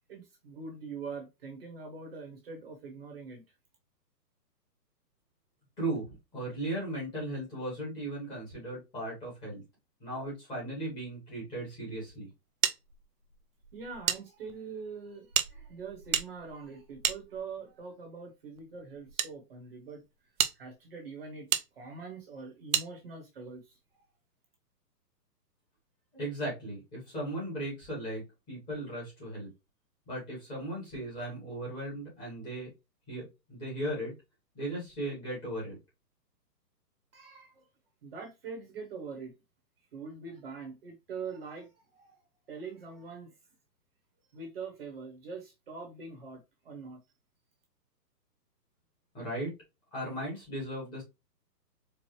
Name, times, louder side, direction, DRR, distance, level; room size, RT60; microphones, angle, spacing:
voice 1, 0.1-3.4 13.7-20.0 20.5-21.5 21.8-23.6 37.1-37.6 38.0-39.3 39.9-42.2 42.5-43.3 44.3-47.0, right 4 dB, 35° right, 1.1 m, -43 dB
voice 2, 5.8-9.6 10.0-12.3 26.1-29.5 30.1-32.7 33.1-34.1 34.5-35.8 49.1-49.5 49.9-51.0, right 1 dB, 10° left, 1.2 m, -37 dB
sound 1, 12.6-14.2 14.5-14.6 15.3-17.8 18.6-19.3 19.9-20.0 20.4-20.6 21.5-21.7 22.7-22.9, right 9 dB, 55° right, 0.6 m, -31 dB
4.6 x 2.3 x 3.0 m
hypercardioid pair, 165°, 49 cm